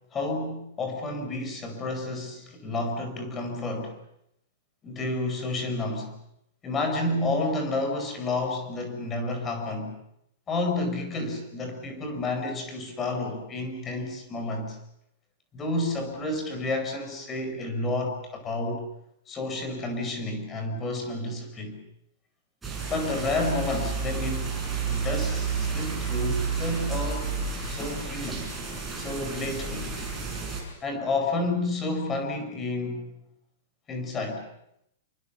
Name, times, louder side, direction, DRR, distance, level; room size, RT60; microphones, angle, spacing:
voice 1, 0.1-4.0 4.8-6.1 6.6-10.0 10.5-14.8 15.5-18.8 19.3-21.8 22.9-24.6 24.9-28.5 28.9-29.9 30.8-33.1 33.9-34.4, left 2 dB, 15° left, 5 dB, 4.6 m, -30 dB
sound 1, 22.6-30.6, right 5 dB, 5° right, 5.6 m, -31 dB
27.5 x 24.0 x 7.0 m, 0.77 s
supercardioid pair, 180°, 0 cm